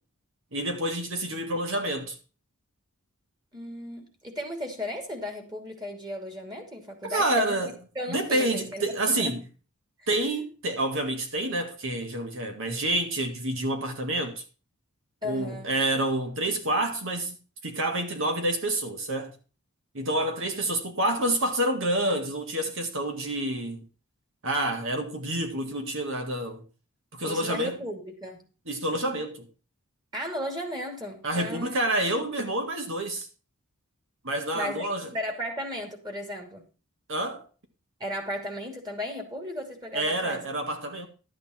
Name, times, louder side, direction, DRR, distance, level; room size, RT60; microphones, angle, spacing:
voice 1, 0.5-2.2 7.0-7.7 8.1-9.4 10.1-14.4 15.2-17.4 17.6-19.3 19.9-23.9 24.4-26.6 27.1-27.8 28.7-29.5 31.2-33.3 34.2-35.1 37.1-37.4 39.9-41.1, right 1 dB, 60° right, 2.1 m, -28 dB
voice 2, 3.5-9.3 10.0-10.1 15.2-15.7 27.2-28.5 30.1-31.8 34.5-36.6 38.0-40.4, left 1 dB, 20° right, 2.9 m, -35 dB
12.5 x 8.7 x 4.4 m
head